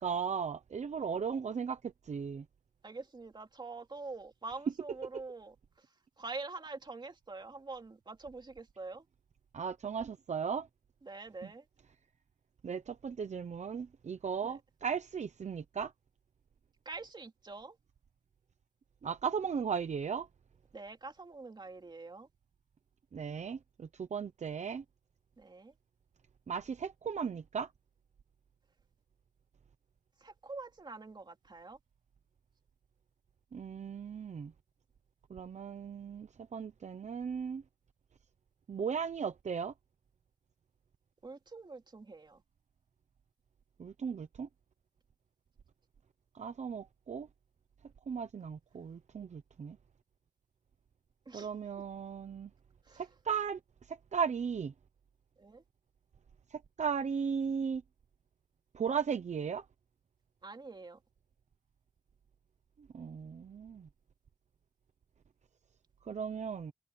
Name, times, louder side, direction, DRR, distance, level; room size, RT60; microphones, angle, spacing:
voice 1, 0.0-2.4 9.5-10.7 12.6-15.9 19.0-20.3 23.1-24.8 26.5-27.7 33.5-34.5 35.3-37.6 38.7-39.7 43.8-44.5 46.3-47.3 48.1-49.8 51.3-52.5 52.9-53.6 53.9-54.7 56.5-57.8 58.7-59.6 62.9-63.9 66.0-66.7, right 6 dB, 70° right, 0.9 m, -36 dB
voice 2, 2.8-5.5 6.2-9.0 11.0-11.6 14.4-14.6 16.8-17.8 20.7-22.3 25.4-25.7 30.2-31.8 41.2-42.4 51.3-51.5 52.8-53.0 55.4-55.6 60.4-61.0, right 3 dB, 35° right, 2.7 m, -45 dB
wide cardioid pair, 130°, 13 cm